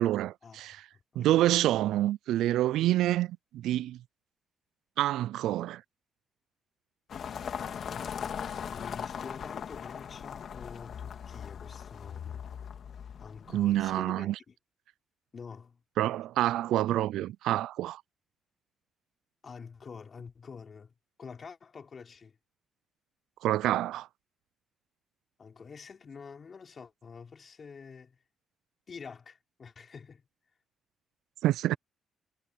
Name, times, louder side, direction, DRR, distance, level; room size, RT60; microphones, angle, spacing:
voice 1, 0.0-0.8 1.2-4.0 5.0-5.8 13.5-14.3 16.0-18.0 23.4-24.1 31.4-31.8, right 14 dB, 85° right, 0.3 m, -27 dB
voice 2, 0.9-1.5 7.3-12.4 13.2-14.5 15.3-15.8 19.4-20.9 21.2-22.4 25.4-28.2 28.9-30.2, left 5 dB, 40° left, 4.4 m, -47 dB
sound 1, 7.1-14.0, left 7 dB, 60° left, 2.0 m, -39 dB
cardioid pair, 90°, 0 cm